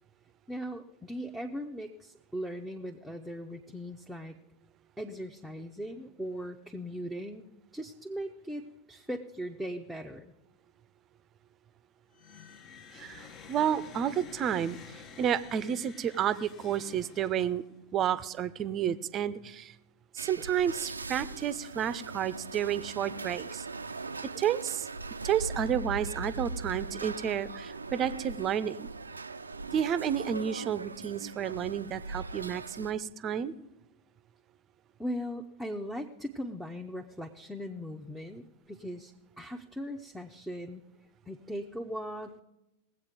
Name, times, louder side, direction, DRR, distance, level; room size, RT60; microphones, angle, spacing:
voice 1, 0.5-4.4 5.0-7.5 7.7-8.6 8.9-10.3 35.0-40.8 41.3-42.4, equal, ahead, 3 dB, 0.8 m, -39 dB
sound 1, 12.1-17.8, left 6 dB, 35° left, 0.9 m, -50 dB
voice 2, 12.9-14.8 15.2-17.6 17.9-19.7 20.1-23.7 24.3-24.9 25.2-28.9 29.7-33.5, right 9 dB, 30° right, 15 dB, 0.6 m, -31 dB
sound 2, 20.2-32.9, right 3 dB, 80° right, 0.4 m, -40 dB
19.0 x 8.1 x 5.1 m, 0.94 s
figure-of-eight pair, 90°, 0 cm